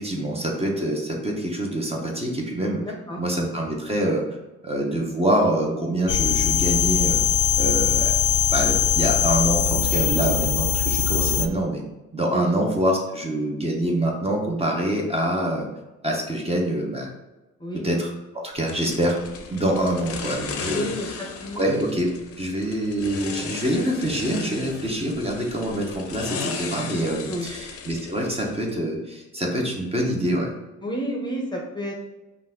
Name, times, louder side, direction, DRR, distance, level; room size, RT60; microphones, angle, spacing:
voice 1, 0.0-2.8 3.2-4.2 4.6-7.2 7.6-8.1 8.5-11.8 12.1-15.7 16.0-17.1 17.7-18.1 18.4-19.2 19.5-20.9 21.5-22.1 22.4-30.5, right 1 dB, 20° right, -1 dB, 1.0 m, -25 dB
voice 2, 2.8-3.2 12.3-12.5 17.6-17.8 20.6-21.6 27.3-27.5 30.8-32.0, equal, 15° left, -1 dB, 0.8 m, -31 dB
scaryscape philtromeda, 6.1-11.5, left 10 dB, 85° left, 0.6 m, -21 dB
sound 1, 18.7-28.8, left 5 dB, 50° left, 0.7 m, -36 dB
5.3 x 2.6 x 3.6 m, 1.1 s
cardioid pair, 90°, 30 cm